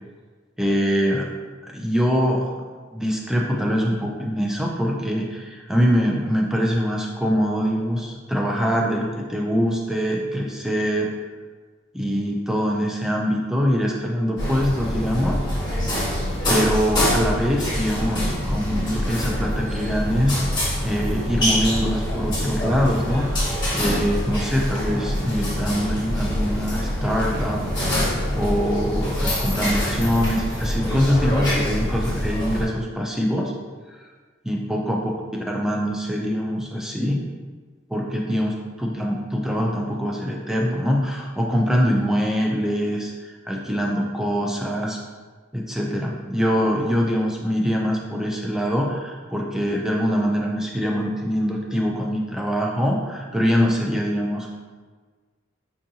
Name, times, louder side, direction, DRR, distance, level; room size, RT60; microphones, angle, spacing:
voice 1, 0.6-1.3 1.7-2.5 2.9-11.1 11.9-15.4 15.7-15.8 16.5-20.4 20.8-33.5 33.9-34.0 34.4-35.0 35.5-37.2 37.9-45.0 45.5-54.5, equal, ahead, -2 dB, 0.3 m, -23 dB
sound 1, 14.4-32.6, equal, 20° left, 1.1 m, -25 dB
4.5 x 2.5 x 2.8 m, 1.4 s
head